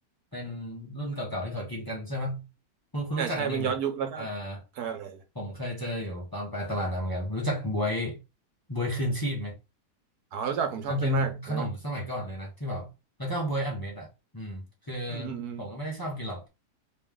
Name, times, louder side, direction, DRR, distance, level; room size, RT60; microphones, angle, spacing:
voice 1, 0.3-2.5 2.9-3.7 4.2-4.6 5.3-8.2 8.7-9.5 10.9-12.9 13.2-16.5, equal, 15° left, 1.0 m, -32 dB
voice 2, 3.2-4.3 4.8-5.2 10.3-11.6 15.1-15.6, right 7 dB, 85° right, 1.4 m, -31 dB
3.2 x 3.1 x 3.6 m
omnidirectional pair, 1.6 m